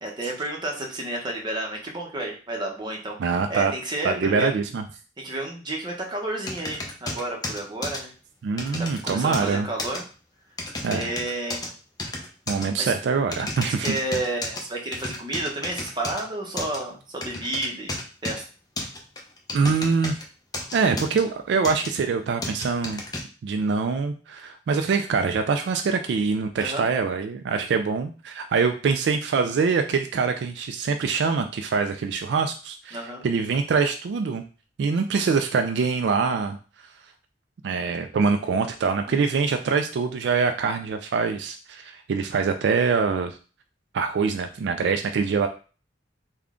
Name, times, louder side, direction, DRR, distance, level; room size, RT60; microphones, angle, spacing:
voice 1, 0.0-4.5 5.2-8.1 8.8-10.0 10.9-11.7 12.8-13.0 13.8-18.0 18.2-18.4 26.6-26.8 32.9-33.2 39.1-39.3, right 1 dB, 25° right, 0 dB, 0.8 m, -31 dB
voice 2, 3.2-3.7 4.0-4.8 8.4-9.7 10.8-11.1 12.5-13.9 19.5-20.2 20.7-23.0 23.4-34.4 34.8-36.6 37.6-43.4 43.9-45.5, right 5 dB, 70° right, 7 dB, 0.3 m, -24 dB
sound 1, 6.5-8.0 8.6-9.5 9.8-10.0 10.6-11.7 12.0-12.7 13.3-14.6 14.9-16.2 16.6-16.8 17.2-18.4 18.8-20.2 20.5-21.2 21.6-21.9 22.4-23.2, left 2 dB, 20° left, 0.6 m, -32 dB
3.6 x 2.2 x 3.6 m, 0.36 s
head